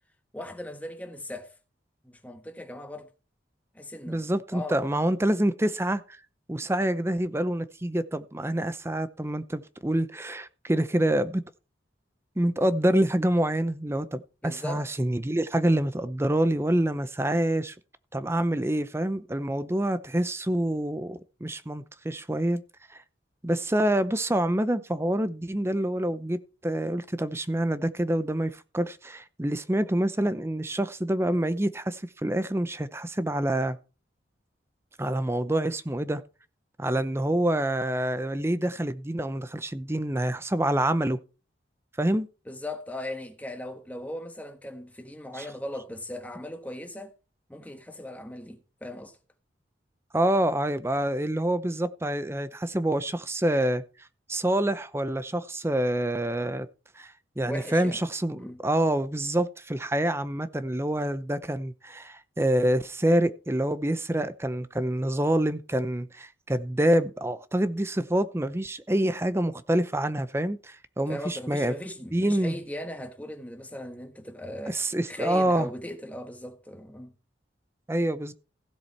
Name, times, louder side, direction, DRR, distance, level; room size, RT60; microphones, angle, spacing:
voice 1, 0.3-1.5 2.0-3.1 3.7-4.2 4.5-4.8 14.4-14.9 42.5-47.1 47.5-49.2 57.4-58.0 58.3-58.6 71.1-74.8 75.1-77.1, left 1 dB, 10° left, 1.4 m, -38 dB
voice 2, 4.1-6.2 6.5-11.4 12.4-17.7 18.1-22.6 22.9-23.0 23.4-33.8 35.0-36.2 36.8-41.2 42.0-42.3 45.3-45.5 50.1-53.8 54.3-56.7 57.0-71.7 72.1-72.6 74.7-75.7 77.9-78.3, right 1 dB, 15° right, 0.6 m, -27 dB
16.0 x 7.5 x 4.3 m
head